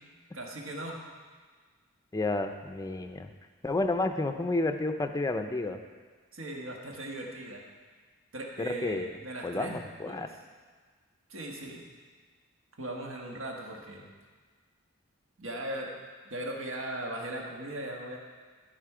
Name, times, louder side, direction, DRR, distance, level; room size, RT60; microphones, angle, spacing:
voice 1, 0.3-1.0 6.3-7.7 8.3-10.3 11.3-11.8 12.8-14.1 15.4-15.9 16.3-18.2, right 1 dB, 75° right, 0 dB, 1.5 m, -38 dB
voice 2, 2.1-3.3 3.6-5.8 8.6-9.2 9.4-10.3, left 2 dB, 15° left, 6 dB, 0.5 m, -31 dB
13.5 x 5.1 x 4.9 m, 1.5 s
head